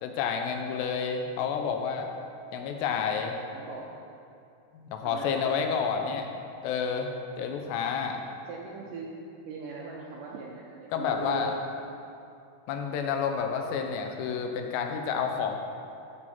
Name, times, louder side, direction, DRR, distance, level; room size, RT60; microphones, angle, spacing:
voice 1, 0.0-2.1 2.5-3.4 4.7-6.3 6.6-8.2 10.9-11.5 12.7-15.6, left 6 dB, 80° left, 4 dB, 2.9 m, -30 dB
voice 2, 3.5-4.0 5.0-5.7 8.5-9.1 9.5-11.6, right 4 dB, 90° right, -3 dB, 1.8 m, -39 dB
14.0 x 6.8 x 4.3 m, 2.6 s
omnidirectional pair, 4.9 m